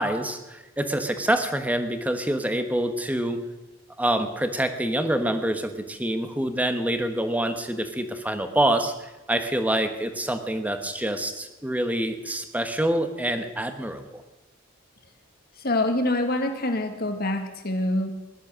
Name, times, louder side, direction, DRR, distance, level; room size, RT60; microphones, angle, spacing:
voice 1, 0.0-3.4 4.0-14.2, right 1 dB, 5° right, 8 dB, 1.1 m, -26 dB
voice 2, 15.6-18.1, left 1 dB, 45° left, 6 dB, 1.7 m, -25 dB
19.0 x 11.5 x 6.3 m, 1.1 s
head